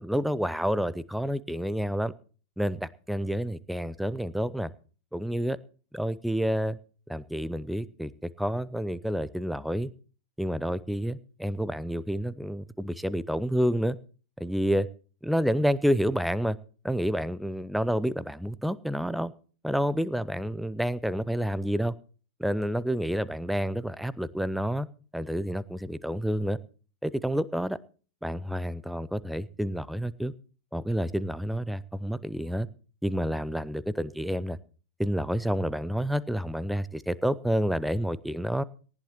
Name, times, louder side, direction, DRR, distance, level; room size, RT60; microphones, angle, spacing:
voice 1, 0.0-2.1 2.6-4.7 5.1-5.6 5.9-6.8 7.1-9.9 10.4-14.0 14.4-14.9 15.2-16.6 16.8-19.3 19.6-21.9 22.4-24.9 25.1-26.6 27.0-27.8 28.2-30.3 30.7-32.7 33.0-34.6 35.0-38.6, equal, ahead, 17 dB, 0.6 m, -29 dB
18.5 x 12.5 x 3.0 m, 0.38 s
figure-of-eight pair, 90°, 0 cm